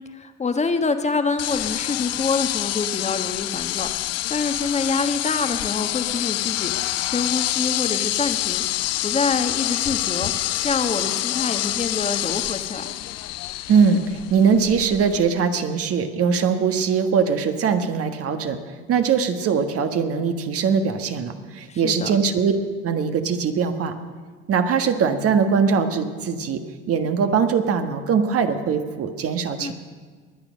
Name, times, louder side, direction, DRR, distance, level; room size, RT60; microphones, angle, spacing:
voice 1, 0.0-10.3 10.6-12.9 21.7-22.1 29.6-29.7, left 4 dB, 20° left, 7 dB, 1.4 m, -26 dB
sound 1, 1.4-15.3, left 15 dB, 55° left, 0.6 m, -27 dB
voice 2, 13.7-18.6 18.9-22.5 22.8-23.9 24.5-26.6 26.9-29.7, right 6 dB, 50° right, 7 dB, 1.5 m, -21 dB
22.5 x 9.0 x 6.4 m, 1.5 s
hypercardioid pair, 70°, 30 cm